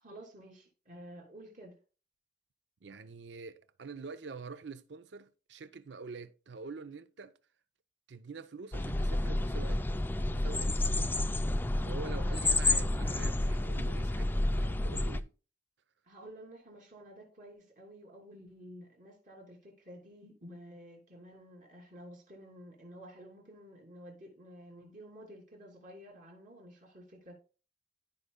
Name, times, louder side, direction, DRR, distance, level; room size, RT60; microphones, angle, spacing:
voice 1, 0.0-1.8 16.1-27.4, equal, 45° right, 2.9 m, -51 dB
voice 2, 2.8-7.3 8.1-9.9 10.2-11.1 11.8-15.3, right 4 dB, 65° right, 0.5 m, -46 dB
sound 1, 8.7-15.2, left 2 dB, 10° left, 0.3 m, -30 dB
14.5 x 5.3 x 2.2 m
head